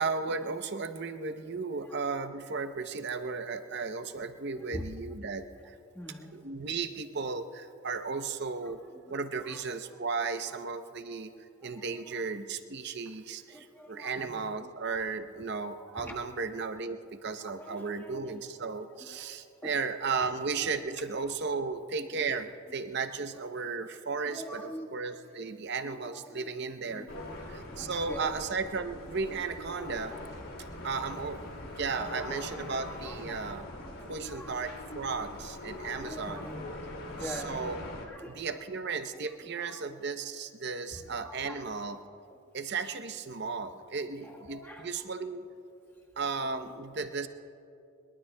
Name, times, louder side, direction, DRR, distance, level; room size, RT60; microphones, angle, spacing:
voice 1, 0.0-5.8 6.3-8.8 9.1-24.6 24.9-27.1 27.5-30.2 30.8-31.4 31.8-33.7 34.0-36.5 37.2-37.8 38.2-42.0 42.5-45.5 46.2-47.3, right 4 dB, 50° right, 9 dB, 0.7 m, -35 dB
voice 2, 4.7-5.1 5.9-6.3 8.6-8.7 9.1-9.6 9.9-10.0 10.5-10.6 11.9-12.2 13.5-15.0 15.8-16.2 16.5-16.6 17.4-18.4 19.1-19.2 19.6-19.8 21.4-21.6 22.1-22.3 24.2-24.9 25.8-26.5 26.8-28.4 30.1-30.2 32.0-33.9 34.3-34.6 36.0-36.8 37.1-37.6 38.1-38.6 39.1-39.3 39.6-40.1 40.9-41.9 44.2-45.1 46.4-46.7, equal, 10° left, -2 dB, 1.4 m, -46 dB
sound 1, 27.1-38.1, left 1 dB, 80° left, 2.3 m, -42 dB
22.5 x 21.5 x 2.2 m, 2.6 s
head